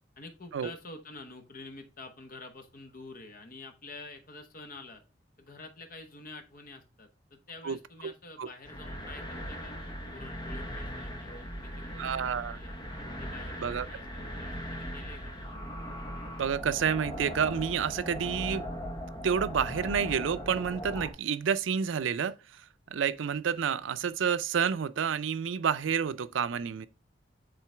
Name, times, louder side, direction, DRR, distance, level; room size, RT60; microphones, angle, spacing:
voice 1, 0.2-5.0 5.4-9.7 10.1-12.8 13.2-15.4, left 3 dB, 50° left, 1.0 m, -48 dB
sound 1, 8.6-21.1, equal, 25° left, 1.0 m, -39 dB
voice 2, 12.0-12.6 13.6-13.9 16.4-18.7 19.2-22.3 22.9-26.9, right 7 dB, 90° right, 0.4 m, -29 dB
7.6 x 3.8 x 3.3 m
head